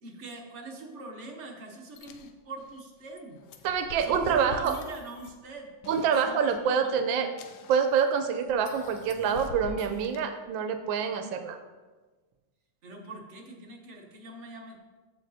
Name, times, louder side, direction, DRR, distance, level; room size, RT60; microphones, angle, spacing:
voice 1, 0.0-3.4 3.9-5.7 6.0-7.0 12.8-14.8, right 2 dB, 45° right, 1 dB, 1.1 m, -43 dB
sound 1, 2.0-2.3 2.6-2.8 3.1-5.5 5.8-6.1 6.3-6.6 7.4-8.0 8.4-10.2, left 3 dB, 80° left, 1.3 m, -44 dB
voice 2, 3.6-4.7 5.9-7.3 7.7-11.6, right 6 dB, 85° right, 8 dB, 1.3 m, -26 dB
14.0 x 4.7 x 2.7 m, 1.3 s
omnidirectional pair, 2.0 m